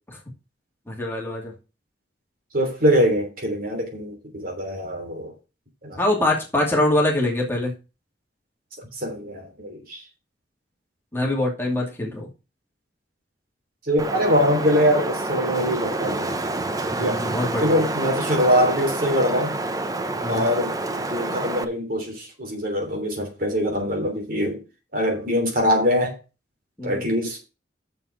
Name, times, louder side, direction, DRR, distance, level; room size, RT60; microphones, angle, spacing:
voice 1, 0.9-1.5 6.0-7.7 11.1-12.3 16.9-17.8 20.2-20.5 26.8-27.0, left 1 dB, 15° left, 2.5 m, -24 dB
voice 2, 2.5-5.3 5.8-6.0 8.9-10.0 13.8-16.4 17.0-17.2 17.6-19.6 20.2-24.6 24.9-26.2 26.8-27.4, equal, 55° right, 3.2 m, -23 dB
Wind, 14.0-21.6, right 2 dB, 20° right, 0.8 m, -28 dB
6.8 x 5.7 x 7.2 m
head